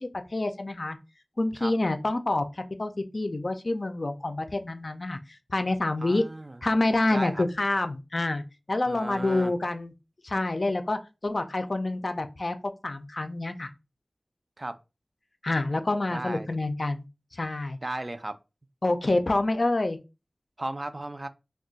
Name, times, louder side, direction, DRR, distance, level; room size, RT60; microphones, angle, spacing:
voice 1, 0.3-1.0 1.4-2.5 2.8-5.2 5.5-6.2 6.6-8.4 8.7-9.9 10.2-13.7 15.4-17.0 17.3-17.8 18.8-20.0, left 2 dB, 65° left, 0.4 m, -27 dB
voice 2, 6.0-6.6 7.1-7.4 8.9-9.5 14.6-14.8 16.1-16.5 17.8-18.4 20.6-21.3, right 1 dB, 45° right, 0.3 m, -35 dB
2.3 x 2.2 x 3.8 m
wide cardioid pair, 50°, 0 cm